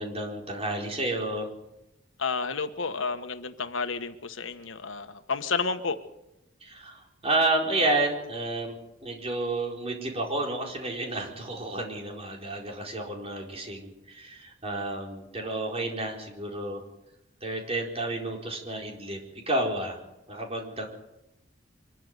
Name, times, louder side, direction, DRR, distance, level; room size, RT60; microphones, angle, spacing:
voice 1, 0.0-1.5 6.6-8.8 9.0-16.8 17.4-19.2 19.5-20.0 20.3-20.9, right 2 dB, 30° right, 1 dB, 4.6 m, -30 dB
voice 2, 2.2-6.0, left 4 dB, 90° left, 8 dB, 1.4 m, -31 dB
24.0 x 13.5 x 9.4 m, 0.89 s
head